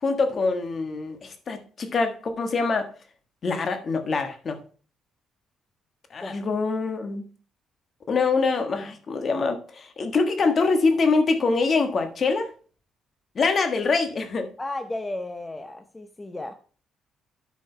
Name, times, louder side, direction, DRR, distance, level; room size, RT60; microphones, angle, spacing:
voice 1, 0.0-2.9 3.4-4.6 6.1-7.3 8.1-12.5 13.3-14.5, left 4 dB, 45° left, 8 dB, 1.5 m, -24 dB
voice 2, 14.6-16.5, left 2 dB, 15° left, 7 dB, 0.7 m, -33 dB
9.4 x 5.2 x 4.5 m, 0.39 s
cardioid pair, 90°, 0 cm